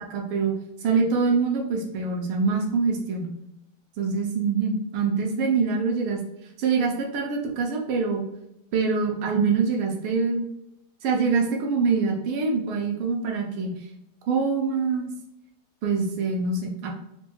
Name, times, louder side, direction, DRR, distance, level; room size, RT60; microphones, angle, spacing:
voice 1, 0.1-0.5 0.8-3.3 4.0-6.2 6.6-8.2 8.7-10.4 11.0-13.7 14.3-15.1 15.8-16.9, right 4 dB, 75° right, 1 dB, 1.5 m, -24 dB
4.3 x 3.0 x 2.2 m, 0.84 s
omnidirectional pair, 2.4 m